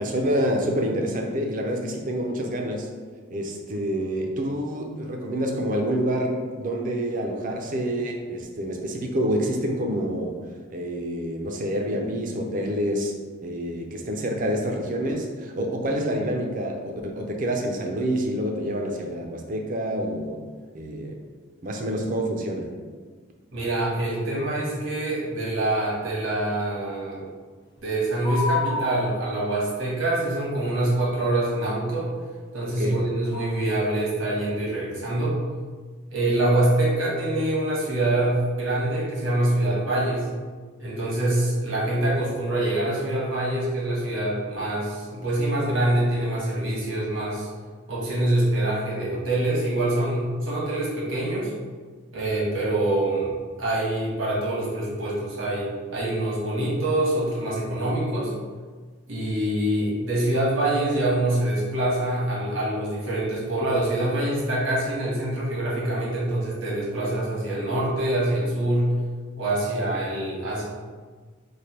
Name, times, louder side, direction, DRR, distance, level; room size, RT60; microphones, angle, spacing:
voice 1, 0.0-2.9 3.3-10.3 10.7-13.1 13.4-20.4 20.7-21.2 21.6-22.7 32.8-33.0, equal, 40° right, 2 dB, 0.5 m, -27 dB
voice 2, 23.5-27.3 27.8-32.1 32.5-35.4 36.1-40.3 40.8-47.5 47.9-51.5 52.1-53.3 53.6-58.3 59.1-68.9 69.4-70.6, right 1 dB, 85° right, -5 dB, 1.2 m, -25 dB
sound 1, 28.2-29.6 33.3-33.6, left 4 dB, 20° left, 0.4 m, -28 dB
3.2 x 2.2 x 4.3 m, 1.5 s
head